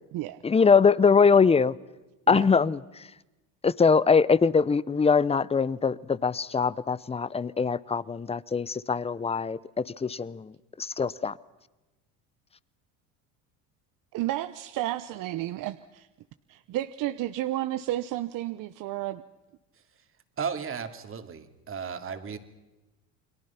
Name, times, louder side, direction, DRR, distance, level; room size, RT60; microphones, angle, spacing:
voice 1, 0.4-1.8 2.3-3.1 3.6-11.4, left 5 dB, 15° left, 0.7 m, -23 dB
voice 2, 14.1-16.1 16.5-19.2, right 15 dB, 60° right, 1.0 m, -32 dB
voice 3, 20.4-22.4, right 6 dB, 35° right, 2.7 m, -34 dB
29.5 x 22.0 x 5.9 m
supercardioid pair, 100°, 37 cm